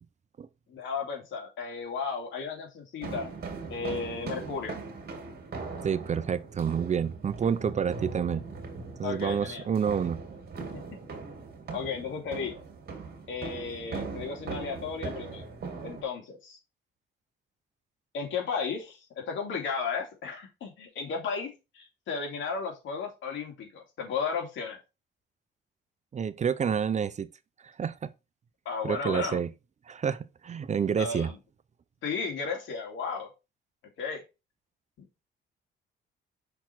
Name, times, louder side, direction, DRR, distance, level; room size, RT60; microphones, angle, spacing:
voice 1, 0.7-3.3 3.7-4.7 9.0-9.7 11.7-12.6 13.3-15.6 15.8-16.6 18.1-19.0 19.2-21.5 21.7-24.8 28.6-29.4 31.0-31.4 32.0-33.3 34.0-34.2 35.0-35.1, left 5 dB, 75° left, 2.5 m, -34 dB
sound 1, 3.0-16.0, right 4 dB, 50° right, 2.2 m, -40 dB
voice 2, 5.8-8.4 9.0-10.2 26.1-27.3 27.6-28.1 28.8-29.5 29.9-31.3, right 7 dB, 35° right, 0.5 m, -28 dB
5.8 x 4.2 x 4.4 m
cardioid pair, 90°, 20 cm